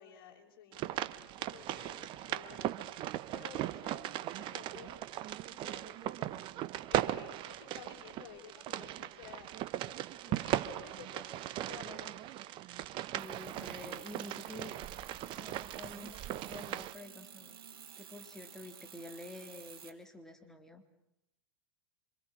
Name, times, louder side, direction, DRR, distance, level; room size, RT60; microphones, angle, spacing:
voice 1, 0.0-5.0 5.5-6.5 6.9-9.9 10.3-12.1, left 8 dB, 60° left, 0 dB, 6.4 m, -54 dB
sound 1, 0.7-16.9, right 14 dB, 40° right, 1.0 m, -38 dB
voice 2, 13.0-14.8 15.3-17.6 18.0-20.8, left 1 dB, 5° left, 4 dB, 3.7 m, -49 dB
sound 2, 13.2-19.9, right 8 dB, 70° right, 2.8 m, -53 dB
26.5 x 25.5 x 6.4 m, 0.83 s
figure-of-eight pair, 90°, 13 cm